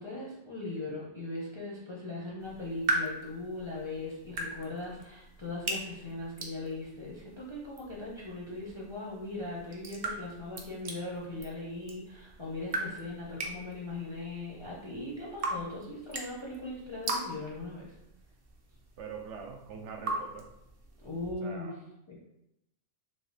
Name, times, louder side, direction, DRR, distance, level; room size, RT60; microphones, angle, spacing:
voice 1, 0.0-17.8 21.0-21.7 22.1-22.2, left 2 dB, 35° left, -5 dB, 0.5 m, -39 dB
sound 1, 2.4-21.3, right 2 dB, 50° right, 0.4 m, -40 dB
voice 2, 19.0-20.5 21.4-21.8, right 5 dB, 75° right, 3 dB, 0.9 m, -43 dB
3.2 x 2.7 x 3.2 m, 0.83 s
omnidirectional pair, 1.3 m